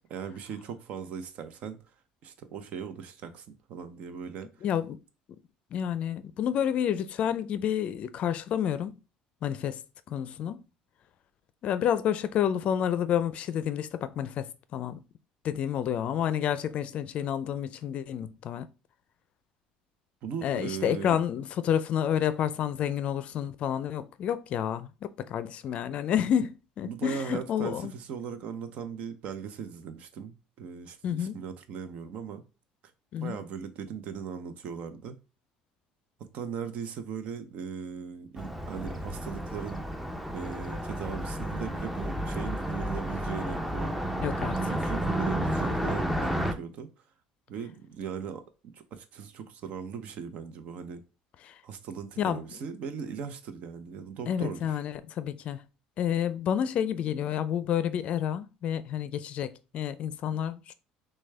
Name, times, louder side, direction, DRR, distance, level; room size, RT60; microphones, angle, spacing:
voice 1, 0.1-1.8 2.2-4.6 20.2-21.2 26.8-32.4 33.2-35.2 36.2-39.8 40.3-44.0 44.7-46.9 47.5-48.4 48.7-51.0 51.6-54.8, right 7 dB, 60° right, 0.7 m, -38 dB
voice 2, 4.6-5.0 5.7-9.0 9.4-9.8 10.1-10.6 11.6-15.0 15.4-18.7 20.4-27.9 31.0-31.4 33.1-33.4 44.2-44.7 51.4-51.6 52.2-52.4 54.3-55.6 56.0-60.7, left 9 dB, 55° left, 0.4 m, -29 dB
Car passing by, 38.4-46.5, right 1 dB, 5° right, 0.6 m, -31 dB
6.3 x 2.3 x 3.3 m
supercardioid pair, 105°, 3 cm